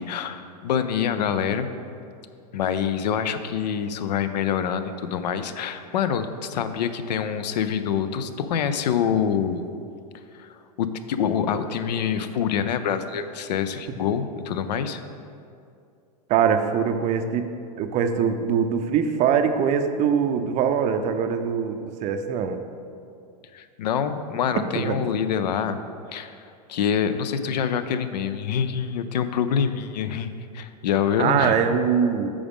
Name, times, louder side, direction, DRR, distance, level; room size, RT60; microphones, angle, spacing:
voice 1, 0.0-1.7 2.5-9.6 10.3-15.0 23.5-25.8 26.1-26.4 26.7-31.6, left 7 dB, 80° left, 11 dB, 0.5 m, -26 dB
voice 2, 16.3-17.5 17.8-22.6 24.7-25.1 31.2-32.3, right 7 dB, 35° right, 8 dB, 0.5 m, -22 dB
8.6 x 4.9 x 3.6 m, 2.4 s
hypercardioid pair, 125°, 21 cm